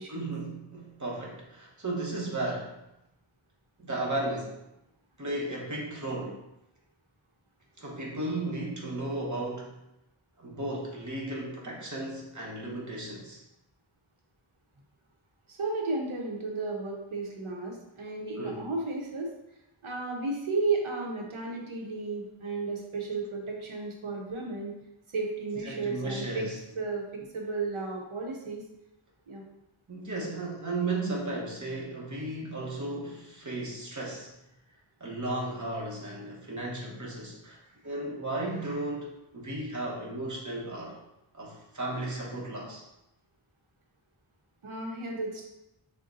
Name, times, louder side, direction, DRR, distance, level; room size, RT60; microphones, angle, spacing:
voice 1, 0.1-2.7 3.8-4.6 5.2-6.4 7.8-9.8 10.4-13.4 18.4-18.7 25.6-26.6 29.9-34.3 35.0-41.0 41.3-42.8, right 2 dB, 40° right, -3 dB, 1.1 m, -35 dB
voice 2, 15.5-19.3 19.8-24.7 25.1-26.5 26.8-28.6 29.3-29.4 44.6-45.4, right 3 dB, 85° right, 0 dB, 0.9 m, -33 dB
6.4 x 2.2 x 2.6 m, 0.88 s
wide cardioid pair, 55°, 48 cm